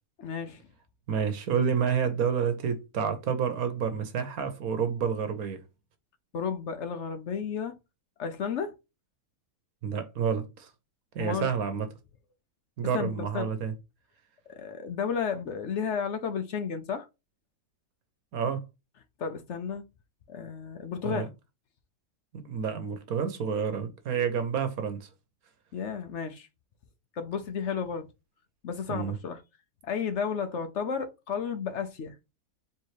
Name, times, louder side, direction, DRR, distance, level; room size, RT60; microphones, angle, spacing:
voice 1, 0.2-0.6 6.3-7.7 8.2-8.7 11.2-11.5 12.9-13.5 14.5-17.1 19.2-19.8 20.3-21.3 25.7-26.5 27.2-28.1 28.6-29.4 29.8-32.1, left 6 dB, 60° left, 0.8 m, -32 dB
voice 2, 1.1-5.6 9.8-10.7 11.1-11.9 12.8-13.7 18.3-18.6 21.0-21.3 22.3-25.1 28.9-29.2, right 7 dB, 70° right, 1.2 m, -29 dB
4.5 x 3.0 x 3.1 m
omnidirectional pair, 1.7 m